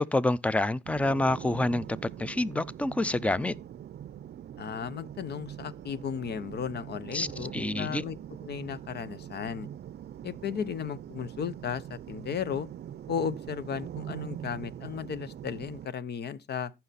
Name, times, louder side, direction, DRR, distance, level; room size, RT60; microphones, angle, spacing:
voice 1, 0.0-1.8 2.2-3.6 7.1-8.0, left 2 dB, 5° left, 0.5 m, -27 dB
sound 1, 0.9-15.9, right 10 dB, 55° right, 0.5 m, -43 dB
voice 2, 4.6-8.2 8.4-9.7 10.2-12.7 13.1-16.7, left 7 dB, 55° left, 0.9 m, -35 dB
14.5 x 5.9 x 4.1 m
cardioid pair, 90°, 20 cm